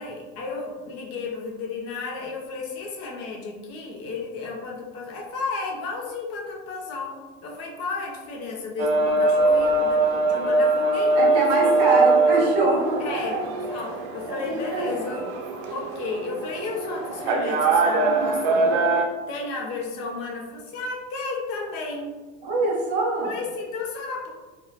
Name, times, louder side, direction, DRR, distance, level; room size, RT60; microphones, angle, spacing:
voice 1, 0.0-11.7 13.0-13.4 13.7-15.3 15.7-18.8 19.3-22.2 23.2-24.3, left 4 dB, 55° left, -1 dB, 0.6 m, -33 dB
sound 1, 8.8-19.0, right 2 dB, 80° right, 0.5 m, -22 dB
voice 2, 11.1-13.4 14.3-15.1 22.4-23.4, right 2 dB, 55° right, -3 dB, 1.0 m, -24 dB
2.4 x 2.2 x 3.1 m, 1.2 s
cardioid pair, 160°, 30 cm